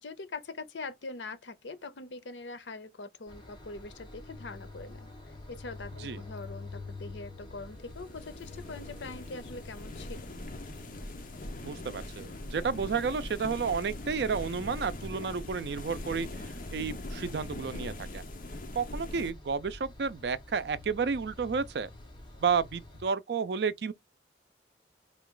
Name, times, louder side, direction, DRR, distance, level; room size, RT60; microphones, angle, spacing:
voice 1, 0.0-5.1 5.5-10.3, left 3 dB, 80° left, 0.7 m, -43 dB
sound 1, 3.3-23.0, left 2 dB, 25° left, 1.7 m, -48 dB
sound 2, 7.6-19.3, left 1 dB, 45° left, 0.8 m, -42 dB
voice 2, 11.6-16.5 16.7-18.2 18.7-21.9 22.4-23.9, right 5 dB, 65° right, 0.4 m, -31 dB
3.9 x 2.4 x 3.7 m
head